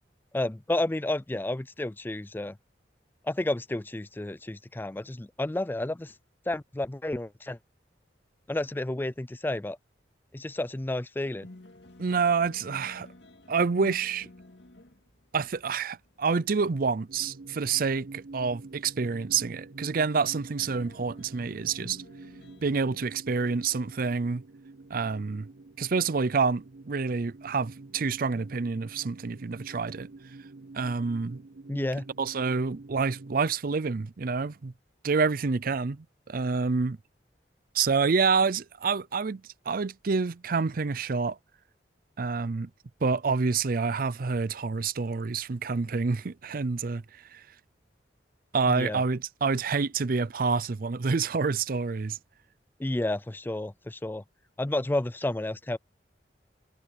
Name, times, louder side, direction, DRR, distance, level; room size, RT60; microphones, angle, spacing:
voice 1, 0.3-2.6 3.2-6.1 6.5-7.6 8.5-9.8 10.3-11.5 31.7-32.0 48.7-49.0 52.8-54.2 54.6-55.8, left 1 dB, 10° left, 0.4 m, -31 dB
sound 1, 11.2-23.1, left 1 dB, 80° left, 2.2 m, -53 dB
voice 2, 12.0-13.1 13.5-14.3 15.3-22.0 22.6-24.4 24.9-25.5 25.8-30.1 30.7-31.4 32.2-34.7 35.0-37.0 37.7-41.4 42.2-42.7 43.0-47.0 47.3-47.4 48.5-52.2, right 4 dB, 55° right, 0.5 m, -28 dB
sound 2, 17.1-33.5, right 3 dB, 85° right, 1.1 m, -47 dB
head